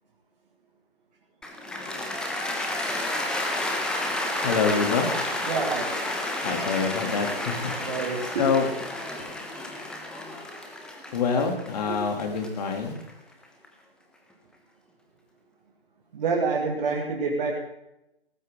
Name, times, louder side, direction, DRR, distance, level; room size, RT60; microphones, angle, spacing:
Cheering / Applause, 1.4-13.6, left 1 dB, 5° left, 1.2 m, -31 dB
voice 1, 4.4-5.1 6.4-7.7 8.4-8.7 11.1-12.9, left 5 dB, 40° left, 3 dB, 3.1 m, -25 dB
voice 2, 5.5-5.9 7.8-8.5 11.9-12.0 16.1-17.6, right 4 dB, 40° right, -1 dB, 2.6 m, -27 dB
18.5 x 15.0 x 3.9 m, 0.88 s
figure-of-eight pair, 140°, 31 cm